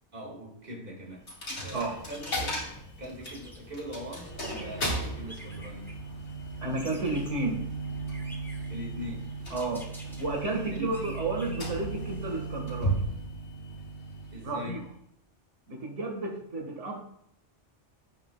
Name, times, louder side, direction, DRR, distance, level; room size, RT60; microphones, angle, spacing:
voice 1, 0.1-1.3 1.6-2.6 3.0-5.9 8.7-9.4 10.7-11.2 14.3-14.8, equal, 50° right, -2 dB, 2.4 m, -41 dB
Coin (dropping), 1.3-15.0, right 2 dB, 70° left, 2.3 m, -36 dB
sound 1, 1.6-13.0, equal, ahead, 1.6 m, -50 dB
voice 2, 1.7-2.0 6.6-7.7 9.5-9.9 10.2-13.1 14.4-14.8 15.7-17.0, right 2 dB, 85° right, -1 dB, 2.2 m, -32 dB
16.5 x 5.9 x 2.4 m, 0.72 s
omnidirectional pair, 1.2 m